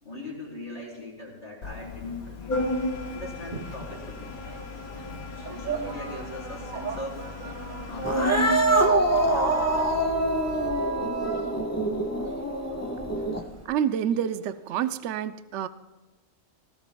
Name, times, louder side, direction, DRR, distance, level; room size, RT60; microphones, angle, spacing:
voice 1, 0.0-2.8 3.1-4.3 5.3-7.2 7.9-8.2 9.2-9.9 12.2-12.4, left 1 dB, 40° left, -5 dB, 4.1 m, -40 dB
Organ, 1.6-10.7, left 2 dB, 85° left, 1.6 m, -35 dB
sound 1, 3.4-4.7 5.0-12.8, right 5 dB, 40° right, 0.9 m, -30 dB
Cat, 8.0-13.6, equal, 15° left, 0.9 m, -27 dB
voice 2, 13.6-15.7, right 9 dB, 65° right, 12 dB, 0.9 m, -28 dB
19.0 x 16.5 x 2.3 m, 1.1 s
omnidirectional pair, 1.5 m